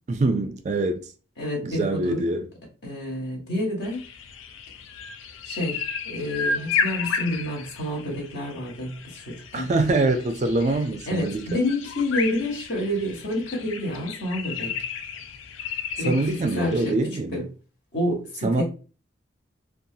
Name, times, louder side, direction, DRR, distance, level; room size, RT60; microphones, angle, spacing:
voice 1, 0.1-1.1 1.6-2.5 9.5-11.6 16.0-17.5 18.4-18.6, right 2 dB, 35° right, 0.3 m, -24 dB
voice 2, 1.4-2.2 2.8-4.0 5.4-5.8 6.0-9.7 11.1-14.8 16.0-16.2 16.5-17.0 17.3-17.5 17.9-18.6, left 1 dB, 60° left, 1.1 m, -28 dB
sound 1, 3.8-16.9, left 5 dB, 90° left, 0.4 m, -33 dB
2.6 x 2.3 x 2.7 m
head